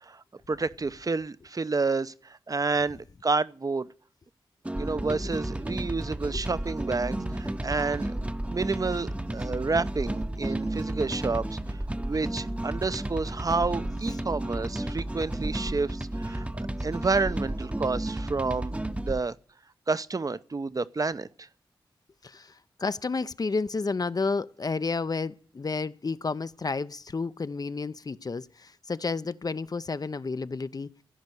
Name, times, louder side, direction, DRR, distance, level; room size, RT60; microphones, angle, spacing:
voice 1, 0.1-3.9 4.8-19.3 19.9-21.5, right 4 dB, 40° right, 0.8 m, -30 dB
sound 1, 4.6-19.2, right 1 dB, 15° right, 0.9 m, -32 dB
voice 2, 22.2-30.9, left 4 dB, 45° left, 0.6 m, -31 dB
15.0 x 5.3 x 9.8 m
cardioid pair, 45°, 9 cm